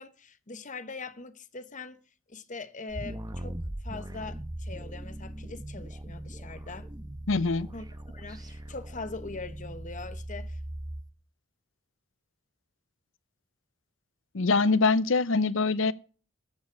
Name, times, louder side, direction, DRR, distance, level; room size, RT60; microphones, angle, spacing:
voice 1, 0.0-2.0 2.3-3.6 3.8-6.9 7.7-7.8 8.1-10.6, left 3 dB, 40° left, 1.2 m, -42 dB
sound 1, 2.9-11.0, right 1 dB, 20° right, 1.0 m, -40 dB
voice 2, 7.3-7.7 14.3-15.9, left 3 dB, 70° left, 0.7 m, -24 dB
14.0 x 7.3 x 8.5 m
head